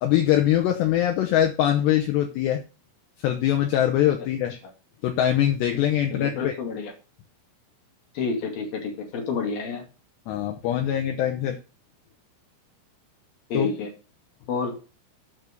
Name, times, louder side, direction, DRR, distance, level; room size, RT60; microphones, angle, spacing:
voice 1, 0.0-2.6 3.2-4.5 5.0-6.5 10.3-11.6 13.5-13.7, left 11 dB, 80° left, 4 dB, 2.4 m, -22 dB
voice 2, 6.1-6.9 8.1-9.8 13.5-13.9 14.5-14.7, left 4 dB, 55° left, 1 dB, 3.6 m, -29 dB
8.9 x 6.2 x 5.2 m, 0.33 s
omnidirectional pair, 6.0 m